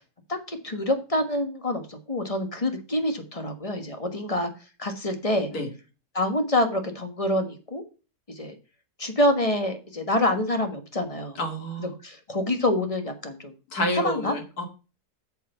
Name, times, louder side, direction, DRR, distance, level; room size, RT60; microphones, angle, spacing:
voice 1, 0.3-4.5 4.8-5.5 6.1-7.8 8.3-8.5 9.0-11.4 12.0-13.5 13.9-14.3, left 1 dB, 25° left, 6 dB, 1.4 m, -26 dB
voice 2, 11.4-11.9 13.7-14.7, left 1 dB, 70° left, 4 dB, 2.8 m, -28 dB
8.3 x 6.7 x 5.5 m, 0.33 s
omnidirectional pair, 1.7 m